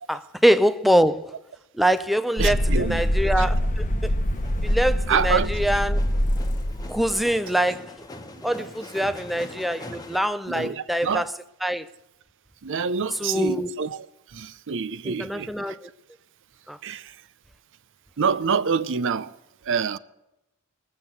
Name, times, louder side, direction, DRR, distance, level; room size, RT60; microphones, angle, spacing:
voice 1, 0.1-1.3 1.8-4.1 4.6-6.0 6.9-7.9 8.4-11.2 11.6-11.9 13.2-13.7 15.1-15.8 16.7-16.8, equal, ahead, 0.5 m, -24 dB
sound 1, 2.4-7.2, equal, 35° left, 1.0 m, -24 dB
voice 2, 2.4-3.0 3.4-3.5 5.1-5.5 8.6-8.7 10.5-11.2 12.6-15.8 16.8-17.2 18.2-19.4 19.6-20.0, right 6 dB, 60° right, 0.6 m, -27 dB
sound 2, 4.3-10.2, left 2 dB, 15° left, 1.2 m, -42 dB
21.0 x 7.3 x 7.8 m
head